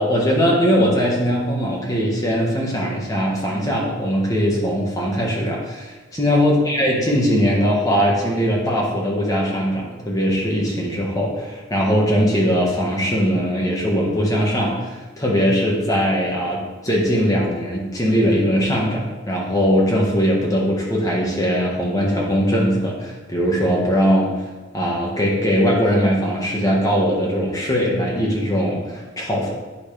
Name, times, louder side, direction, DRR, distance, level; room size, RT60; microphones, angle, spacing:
voice 1, 0.0-24.3 24.7-29.5, equal, 15° left, -4 dB, 1.5 m, -20 dB
11.0 x 4.2 x 3.4 m, 1.2 s
head